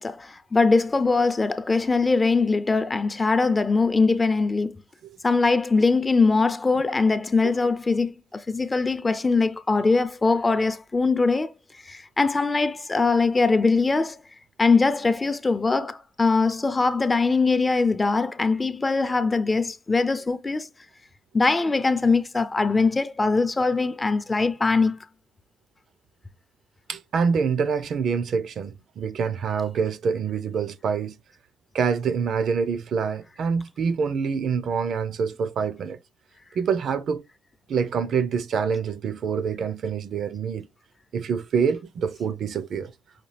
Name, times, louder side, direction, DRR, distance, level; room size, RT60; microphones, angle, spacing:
voice 1, 0.0-4.8 5.2-11.5 11.9-14.2 14.6-20.7 21.3-25.0, left 3 dB, 25° left, 0.4 m, -22 dB
voice 2, 26.9-31.2 31.7-36.0 36.5-37.2 37.7-40.7 41.1-42.9, right 6 dB, 65° right, 0.5 m, -26 dB
5.8 x 2.3 x 3.2 m
cardioid pair, 90°, 0 cm